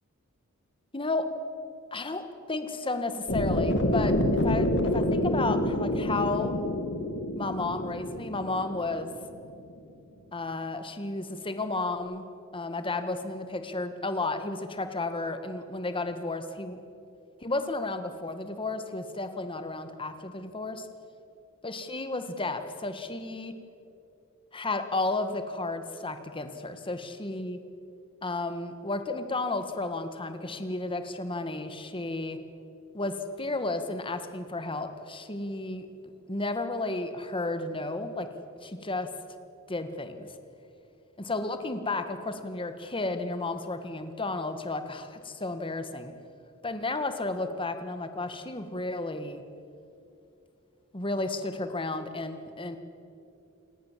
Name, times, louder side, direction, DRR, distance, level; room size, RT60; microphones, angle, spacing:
voice 1, 0.9-1.3 1.9-4.2 4.4-6.6 7.4-9.1 10.3-12.3 12.5-16.8 17.4-20.9 21.6-23.5 24.5-27.6 28.2-32.4 32.9-35.9 36.3-38.3 38.6-39.1 39.7-40.3 41.2-46.1 46.6-49.4 50.9-52.8, left 2 dB, 25° left, 8 dB, 1.7 m, -32 dB
sound 1, 3.3-9.4, left 1 dB, 55° left, 2.4 m, -27 dB
28.5 x 19.0 x 7.6 m, 2.7 s
head